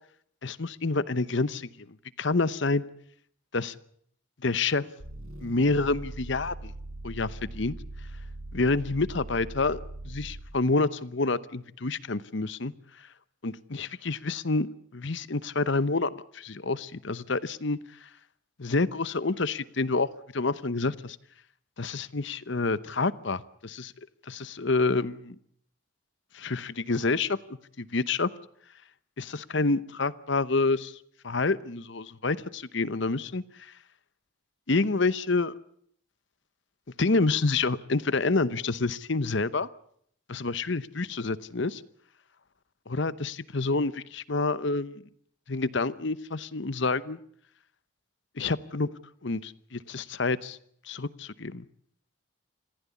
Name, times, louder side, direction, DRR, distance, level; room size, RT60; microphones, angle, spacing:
voice 1, 0.4-1.7 2.2-2.8 3.5-3.7 4.4-4.9 5.4-6.7 7.0-7.7 8.5-12.7 13.4-14.7 14.9-18.1 18.6-21.2 21.8-23.9 24.3-25.4 26.3-28.3 29.2-31.0 31.2-33.7 34.7-35.5 37.0-39.7 40.3-41.8 42.9-44.9 45.5-47.2 48.4-48.9 49.2-50.6 50.9-51.7, left 3 dB, 55° left, 17 dB, 0.9 m, -28 dB
sound 1, 5.0-10.6, right 2 dB, 85° right, 5.6 m, -41 dB
26.0 x 15.5 x 8.4 m, 0.65 s
head